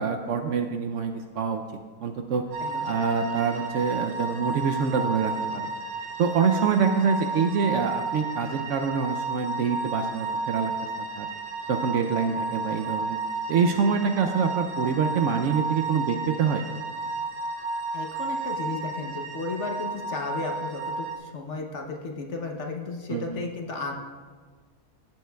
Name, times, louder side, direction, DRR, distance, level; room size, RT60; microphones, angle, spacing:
voice 1, 0.0-1.6 2.0-2.5 2.8-5.7 6.2-10.7 11.2-11.3 11.7-13.2 13.5-16.6 23.1-23.3, right 6 dB, 70° right, 6 dB, 0.8 m, -25 dB
sound 1, 2.5-21.2, right 3 dB, 85° right, 1.3 m, -32 dB
voice 2, 17.9-23.9, left 3 dB, 55° left, 2 dB, 1.1 m, -34 dB
16.0 x 7.5 x 2.3 m, 1.5 s
omnidirectional pair, 1.6 m